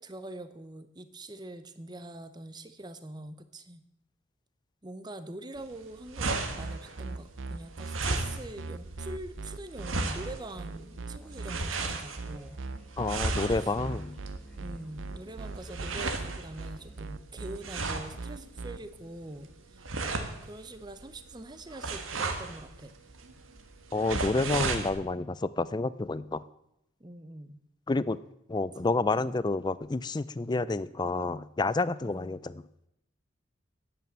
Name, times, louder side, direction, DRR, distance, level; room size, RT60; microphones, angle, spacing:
voice 1, 0.0-3.8 4.8-12.6 13.6-13.7 14.5-19.9 20.4-22.9 27.0-27.6 32.0-32.4, right 1 dB, 20° right, 11 dB, 0.8 m, -44 dB
sound 1, 5.6-24.9, right 3 dB, 80° right, 1.5 m, -36 dB
sound 2, 6.2-18.8, right 3 dB, 65° right, 0.6 m, -39 dB
Musical instrument, 11.1-17.0, right 1 dB, 5° left, 1.8 m, -51 dB
voice 2, 13.0-14.2 23.9-26.4 27.9-28.2 28.5-32.6, left 3 dB, 20° left, 17 dB, 0.4 m, -29 dB
10.5 x 8.5 x 7.4 m, 0.82 s
head